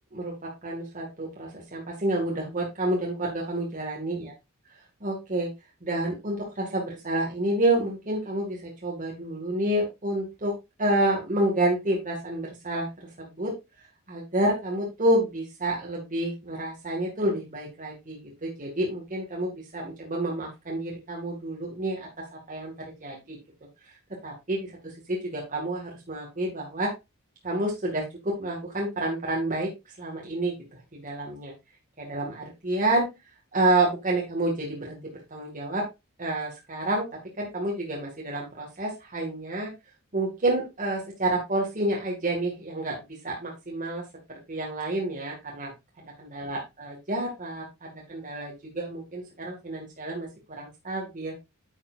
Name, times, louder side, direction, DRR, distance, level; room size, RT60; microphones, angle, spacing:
voice 1, 0.1-4.3 5.0-5.5 5.8-10.5 10.8-12.9 13.2-13.5 14.1-22.1 22.5-22.7 23.0-23.4 24.2-24.7 25.1-26.9 27.4-29.7 30.0-30.6 30.9-31.5 32.0-33.1 33.5-35.8 36.2-37.1 37.4-39.7 40.1-44.0 44.5-45.7 46.2-51.3, right 1 dB, 35° right, -2 dB, 2.2 m, -29 dB
9.1 x 7.4 x 2.6 m, 0.23 s
head